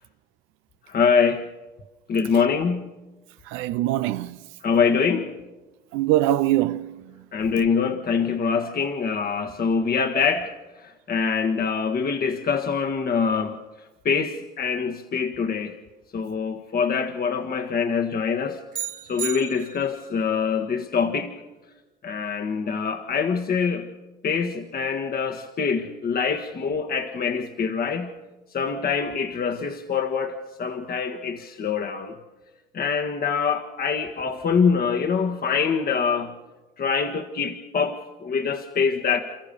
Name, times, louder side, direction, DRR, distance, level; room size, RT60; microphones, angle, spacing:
voice 1, 0.9-1.5 2.1-2.9 4.6-5.3 7.3-10.5 10.8-13.6 14.0-15.7 16.1-18.6 19.1-21.4 22.0-23.9 24.2-28.1 28.5-32.1 32.7-36.3 36.8-39.2, left 6 dB, 50° left, 1.5 m, -24 dB
voice 2, 3.5-4.4 5.9-7.1, right 14 dB, 85° right, 0.6 m, -23 dB
sound 1, 18.7-20.1, right 9 dB, 40° right, 1.4 m, -34 dB
29.5 x 14.0 x 6.8 m
supercardioid pair, 70°, 20 cm